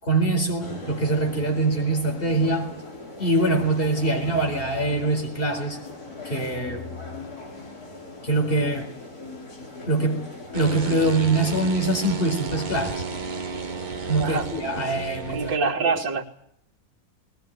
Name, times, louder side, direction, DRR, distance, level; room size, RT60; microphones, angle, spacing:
voice 1, 0.0-2.7 3.2-5.8 6.2-6.9 8.2-8.9 9.9-10.3 10.5-13.0 14.1-15.5 15.9-16.0, right 2 dB, 30° left, 4.6 m, -23 dB
sound 1, 0.6-15.0, left 2 dB, 50° left, 4.0 m, -41 dB
sound 2, 10.5-15.6, right 4 dB, 30° right, 1.0 m, -33 dB
voice 2, 15.3-16.2, right 4 dB, 75° right, 3.1 m, -25 dB
20.5 x 19.0 x 9.3 m
omnidirectional pair, 2.0 m